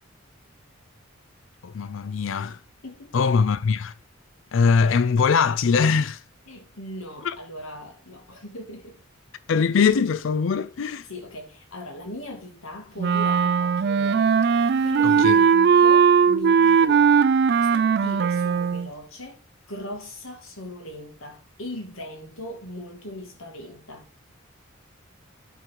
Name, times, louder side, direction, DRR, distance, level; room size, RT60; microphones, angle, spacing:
voice 1, 1.6-2.6 3.1-3.9 4.5-6.2 7.2-7.4 9.5-11.1 15.0-15.4, left 5 dB, 70° left, 0.4 m, -22 dB
voice 2, 2.8-3.3 6.5-9.0 11.1-14.6 14.8-17.2 17.6-19.4 19.7-24.1, left 1 dB, 85° left, 2.2 m, -39 dB
Wind instrument woodwind instrument, 13.0-18.9, right 6 dB, 50° right, 0.4 m, -19 dB
10.0 x 3.9 x 4.7 m
head